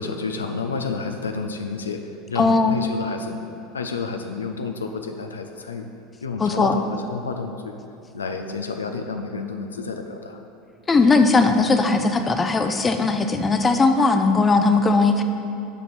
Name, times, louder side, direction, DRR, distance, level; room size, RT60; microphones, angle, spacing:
voice 1, 0.0-2.0 2.3-3.5 3.7-5.9 6.2-7.8 8.1-10.4, left 4 dB, 90° left, 5 dB, 0.4 m, -30 dB
voice 2, 2.4-2.8 6.4-6.8 10.9-15.2, left 3 dB, 25° left, 7 dB, 0.6 m, -18 dB
6.6 x 5.1 x 6.1 m, 2.8 s
hypercardioid pair, 80°, 0 cm